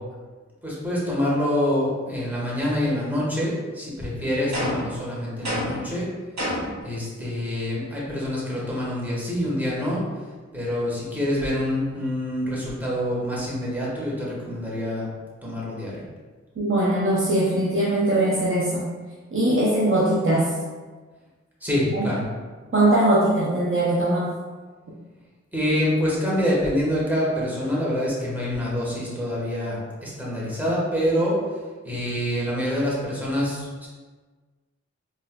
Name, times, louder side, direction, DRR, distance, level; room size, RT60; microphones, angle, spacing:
voice 1, 0.6-6.1 6.8-10.0 10.5-15.1 15.4-15.9 21.6-22.2 25.5-31.4 31.8-33.9, left 1 dB, 5° right, -6 dB, 1.4 m, -26 dB
sound 1, 4.5-5.0 5.4-5.9 6.4-6.8, equal, 65° right, 1.2 m, -28 dB
voice 2, 16.6-18.9 19.3-20.5 21.9-22.1 22.7-24.3, right 1 dB, 45° right, -6 dB, 0.7 m, -21 dB
4.1 x 2.6 x 2.3 m, 1.4 s
cardioid pair, 45°, 29 cm